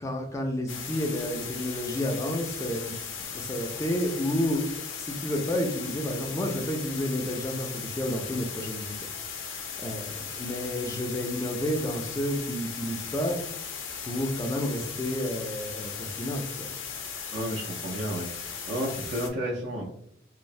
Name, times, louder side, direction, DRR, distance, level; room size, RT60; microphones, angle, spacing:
voice 1, 0.0-3.0 3.3-4.6 4.9-8.9 9.8-13.4 14.0-16.7, left 1 dB, 15° left, 3 dB, 0.3 m, -30 dB
sound 1, 0.7-19.3, left 6 dB, 80° left, 0.4 m, -37 dB
voice 2, 17.3-19.8, equal, 60° right, -4 dB, 0.5 m, -32 dB
3.1 x 2.0 x 2.5 m, 0.71 s
head